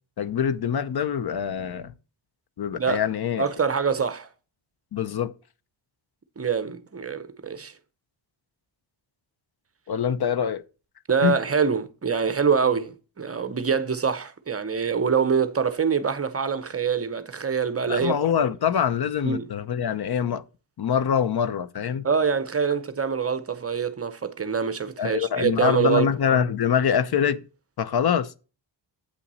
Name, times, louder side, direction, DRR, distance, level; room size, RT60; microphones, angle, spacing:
voice 1, 0.2-1.9 2.6-3.4 4.9-5.3 9.9-10.6 11.2-11.3 17.9-20.4 20.8-22.1 25.0-27.4 27.8-28.3, left 8 dB, 55° left, 0.6 m, -24 dB
voice 2, 3.4-4.3 6.4-7.7 11.1-18.2 19.2-19.4 22.0-26.1, right 6 dB, 30° right, 0.6 m, -25 dB
8.2 x 5.7 x 4.1 m
wide cardioid pair, 165°, 46 cm